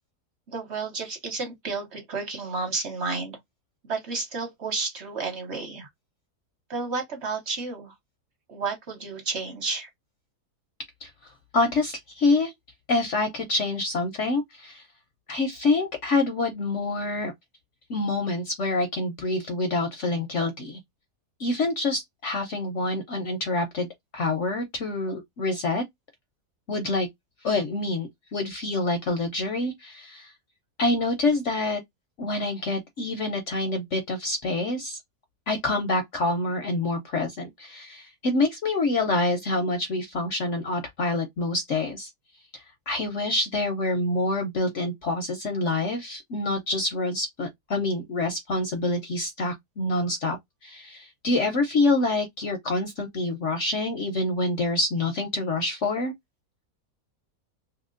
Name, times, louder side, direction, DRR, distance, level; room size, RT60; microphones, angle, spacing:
voice 1, 0.5-3.4 3.8-5.9 6.7-7.9 8.5-9.9, right 4 dB, 45° right, 1.2 m, -31 dB
voice 2, 11.0-12.5 12.9-14.9 15.3-17.3 17.9-20.8 21.4-23.9 24.1-25.8 26.7-27.1 27.4-30.3 30.8-31.8 32.2-35.0 35.5-42.1 42.5-50.4 50.6-56.1, left 2 dB, 60° left, 0.8 m, -26 dB
2.9 x 2.8 x 2.4 m
omnidirectional pair, 1.7 m